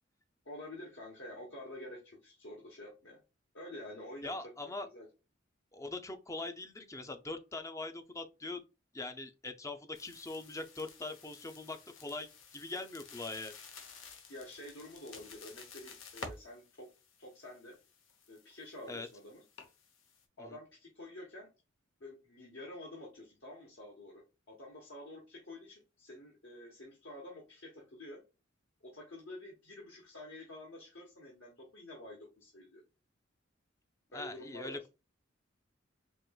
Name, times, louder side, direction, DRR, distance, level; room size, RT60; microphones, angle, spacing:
voice 1, 0.4-3.2 3.5-5.1 14.3-16.9 17.2-17.8 18.3-19.4 20.4-21.5 22.0-28.2 28.8-32.8 34.1-34.9, left 1 dB, 70° left, 1.1 m, -49 dB
voice 2, 4.2-4.9 5.7-8.6 8.9-13.5 18.9-19.1 34.1-34.9, left 2 dB, 15° left, 0.4 m, -42 dB
sound 1, 9.9-20.2, left 4 dB, 85° left, 0.8 m, -52 dB
4.5 x 2.9 x 2.3 m
head